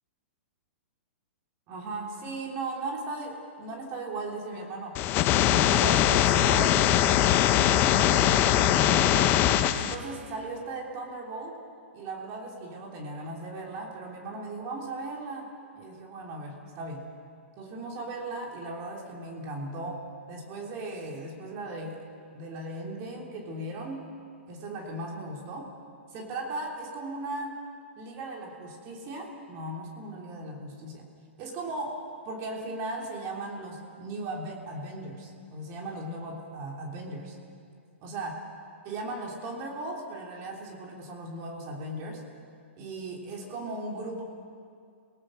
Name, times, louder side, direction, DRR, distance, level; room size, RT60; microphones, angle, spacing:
voice 1, 1.7-5.0 5.3-9.4 9.7-11.6 11.9-17.1 17.6-22.1 22.3-24.1 24.5-25.7 26.1-27.6 28.0-31.1 31.4-37.4 38.0-38.4 38.8-42.2 42.8-44.2, right 2 dB, 40° right, 0 dB, 3.3 m, -37 dB
sound 1, 4.9-9.9, left 12 dB, 35° left, 1.0 m, -22 dB
27.5 x 18.5 x 6.4 m, 2.4 s
hypercardioid pair, 120°, 7 cm